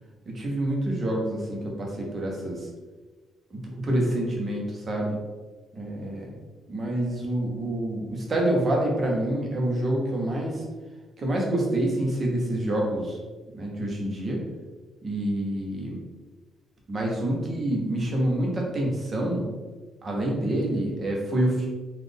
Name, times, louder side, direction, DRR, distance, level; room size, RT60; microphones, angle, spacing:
voice 1, 0.3-2.7 3.5-5.2 5.8-6.3 6.7-10.7 11.2-13.2 13.5-14.4 15.0-16.0 16.9-19.5 20.0-21.6, right 1 dB, 30° right, -1 dB, 0.9 m, -27 dB
4.0 x 2.5 x 3.5 m, 1.3 s
cardioid pair, 140°, 0 cm